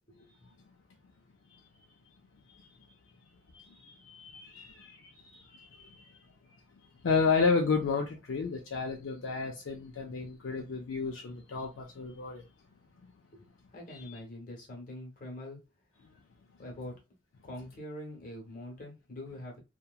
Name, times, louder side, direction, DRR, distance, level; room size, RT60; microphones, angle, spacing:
voice 1, 2.5-2.9 3.5-6.1 7.0-12.4 13.0-13.1 13.9-14.2, left 4 dB, 70° left, 0.4 m, -32 dB
voice 2, 13.3-15.6 16.6-17.0 17.4-19.6, left 1 dB, 45° left, 1.0 m, -44 dB
2.8 x 2.2 x 2.3 m
head